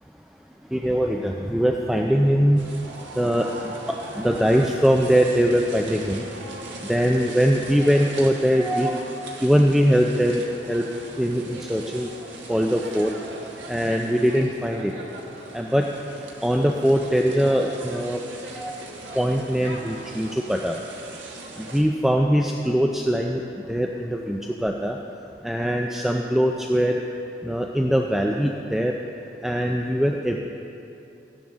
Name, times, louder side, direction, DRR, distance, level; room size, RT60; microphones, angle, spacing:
voice 1, 0.7-2.6 3.2-3.7 4.2-6.2 6.8-9.0 9.4-10.4 10.7-10.8 11.2-12.1 12.5-13.1 13.7-14.9 15.5-15.8 16.4-18.2 18.5-18.8 19.1-20.8 21.6-23.4 23.7-25.0 25.4-27.0 27.4-28.9 29.4-30.4, equal, ahead, 1 dB, 0.3 m, -21 dB
sound 1, 2.6-21.8, right 2 dB, 85° right, 1.3 m, -39 dB
13.5 x 10.0 x 3.6 m, 2.8 s
head